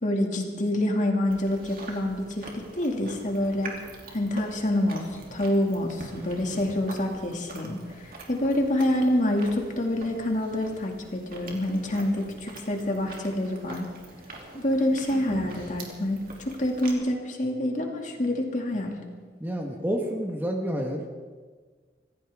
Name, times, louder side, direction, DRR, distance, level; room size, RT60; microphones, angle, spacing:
voice 1, 0.0-3.7 4.1-5.0 5.3-7.8 8.0-13.8 14.5-19.0, left 1 dB, 45° left, 1 dB, 2.3 m, -27 dB
Chewing mastication, 1.3-16.9, right 2 dB, 50° right, 2.7 m, -44 dB
voice 2, 19.4-21.0, equal, 10° right, 2 dB, 1.3 m, -29 dB
25.5 x 15.5 x 3.6 m, 1.5 s
head